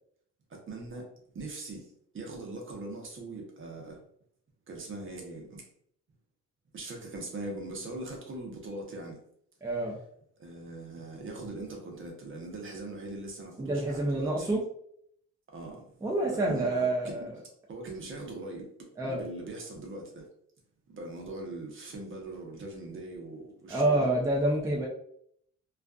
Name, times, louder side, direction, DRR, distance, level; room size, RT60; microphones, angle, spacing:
voice 1, 0.5-1.1 1.3-1.9 2.1-4.0 4.7-5.7 6.7-9.2 10.4-14.5 15.5-15.9 16.5-17.1 17.7-18.7 19.0-20.2 20.9-24.1, right 2 dB, 40° right, 1 dB, 0.8 m, -41 dB
voice 2, 9.6-10.0 13.6-14.6 16.0-17.4 19.0-19.2 23.7-24.9, right 2 dB, 10° right, -2 dB, 0.5 m, -28 dB
2.4 x 2.4 x 2.3 m, 0.67 s
cardioid pair, 90°, 30 cm